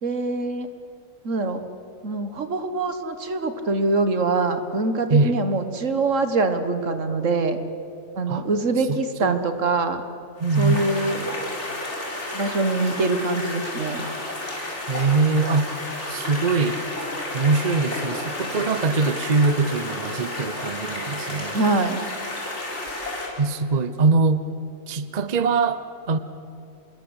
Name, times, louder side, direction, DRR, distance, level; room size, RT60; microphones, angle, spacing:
voice 1, 0.0-0.7 1.2-1.6 2.0-7.6 8.2-10.0 10.6-11.3 12.3-14.1 21.5-22.0, right 3 dB, 70° right, 9 dB, 1.8 m, -24 dB
voice 2, 8.9-9.5 10.4-10.8 14.9-15.7 16.1-16.8 17.3-21.6 23.4-24.4 24.9-26.2, right 3 dB, 35° right, 12 dB, 0.8 m, -22 dB
sound 1, 10.4-23.3, left 1 dB, 60° left, 4.8 m, -32 dB
26.0 x 21.0 x 8.1 m, 2.7 s
omnidirectional pair, 1.4 m